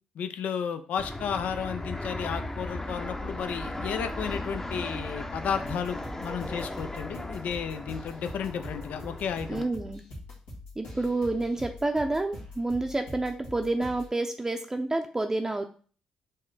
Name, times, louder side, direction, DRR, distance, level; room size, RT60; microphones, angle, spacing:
voice 1, 0.2-9.7, left 7 dB, 70° left, 9 dB, 0.5 m, -33 dB
Fixed-wing aircraft airplane, 1.0-9.7, left 1 dB, 15° left, 0.7 m, -37 dB
sound 1, 5.4-14.1, left 1 dB, 90° left, 1.6 m, -44 dB
voice 2, 9.5-10.0 10.8-15.6, right 2 dB, 20° right, 4 dB, 0.6 m, -29 dB
5.2 x 2.1 x 4.0 m, 0.41 s
supercardioid pair, 50°, 3 cm